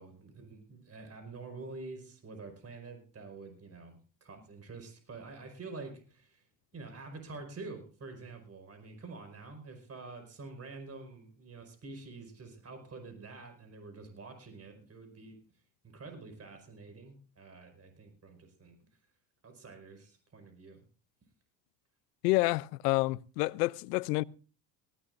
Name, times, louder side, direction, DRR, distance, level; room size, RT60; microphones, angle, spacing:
voice 1, 0.0-6.5 6.7-15.4 15.8-18.8 19.4-20.8, right 3 dB, 30° right, 5.2 m, -47 dB
voice 2, 22.2-24.2, left 22 dB, 90° left, 0.6 m, -28 dB
19.0 x 16.0 x 2.6 m
supercardioid pair, 85°, 47 cm